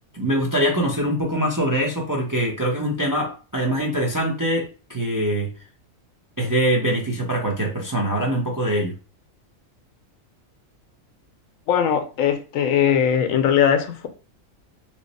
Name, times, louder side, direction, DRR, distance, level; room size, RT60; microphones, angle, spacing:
voice 1, 0.1-4.6 4.9-5.5 6.4-8.9, right 1 dB, 25° right, 0.4 m, -23 dB
voice 2, 11.7-14.1, left 8 dB, 75° left, 1.0 m, -20 dB
3.1 x 2.0 x 3.9 m
omnidirectional pair, 1.4 m